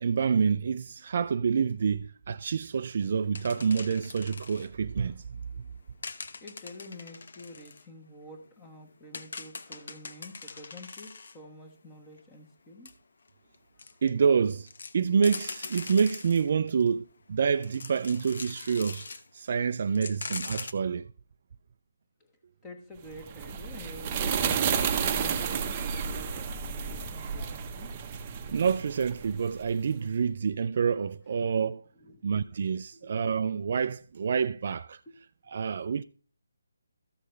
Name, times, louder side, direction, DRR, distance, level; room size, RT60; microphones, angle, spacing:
voice 1, 0.0-5.2 14.0-14.7 14.9-19.1 19.3-21.1 28.5-31.8 32.2-35.0 35.5-36.0, right 6 dB, 40° right, 0.4 m, -27 dB
sound 1, 3.3-4.7 6.0-7.8 8.5-8.6 8.9-11.4 12.2-12.3 12.9-13.0 13.5-14.1 14.7-16.9 17.5-19.3 19.6-19.7 19.9-20.7, left 4 dB, 55° left, 0.8 m, -42 dB
voice 2, 6.4-12.9 22.2-22.4 22.6-27.9 31.9-33.1, equal, 10° left, 1.3 m, -48 dB
sound 2, 23.1-29.7, right 6 dB, 20° right, 0.8 m, -31 dB
13.5 x 6.5 x 3.2 m
hypercardioid pair, 170°, 0 cm